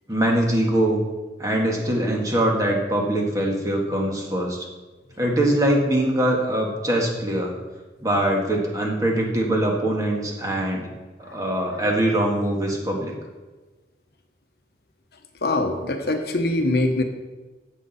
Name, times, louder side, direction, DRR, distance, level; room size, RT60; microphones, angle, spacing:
voice 1, 0.1-1.0 1.4-4.6 5.2-7.5 8.0-10.9 11.3-13.1, right 1 dB, 20° right, 0 dB, 1.8 m, -22 dB
voice 2, 15.4-17.0, left 2 dB, 60° left, 5 dB, 1.1 m, -23 dB
16.0 x 6.1 x 4.2 m, 1.2 s
head